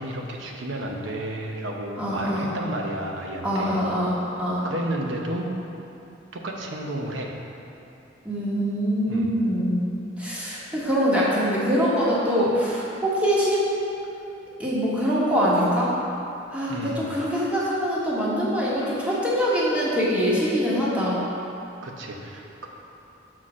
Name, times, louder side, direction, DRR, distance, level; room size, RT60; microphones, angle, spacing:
voice 1, 0.0-3.8 4.6-5.5 6.3-7.3 9.1-9.3 16.7-17.1 21.8-22.7, right 1 dB, 70° right, 0 dB, 0.8 m, -32 dB
voice 2, 2.0-2.5 3.4-4.6 8.2-9.8 10.2-13.7 14.6-15.9 16.5-21.2, equal, 5° right, -8 dB, 1.3 m, -23 dB
6.2 x 4.2 x 6.2 m, 2.8 s
head